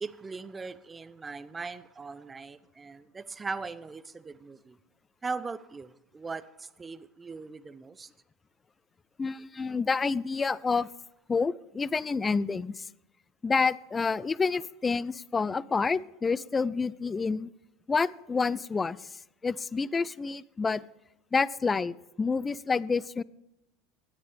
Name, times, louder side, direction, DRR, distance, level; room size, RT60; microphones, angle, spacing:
voice 1, 0.0-4.8 5.2-8.1, right 4 dB, 20° right, 16 dB, 0.7 m, -39 dB
voice 2, 9.2-10.9 11.3-12.8 13.4-17.5 17.9-19.0 19.4-20.8 21.3-23.2, left 4 dB, 20° left, 22 dB, 0.4 m, -28 dB
17.0 x 10.5 x 3.4 m, 0.84 s
hypercardioid pair, 85°, 0 cm